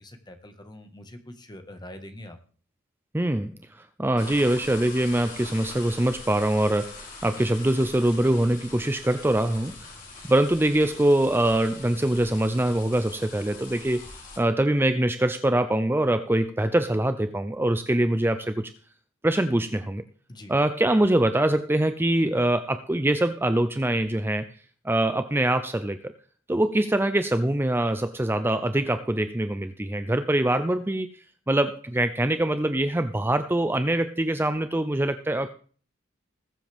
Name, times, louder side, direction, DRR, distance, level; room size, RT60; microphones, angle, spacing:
voice 1, 0.0-2.4 20.3-20.5, left 1 dB, 20° left, 7 dB, 1.5 m, -44 dB
voice 2, 3.1-9.9 10.3-18.7 19.2-20.0 20.5-24.5 24.8-26.1 26.5-35.5, right 1 dB, 10° right, 10 dB, 0.5 m, -24 dB
sound 1, 4.2-14.4, left 3 dB, 45° left, 4.8 m, -43 dB
20.5 x 7.7 x 3.5 m, 0.42 s
head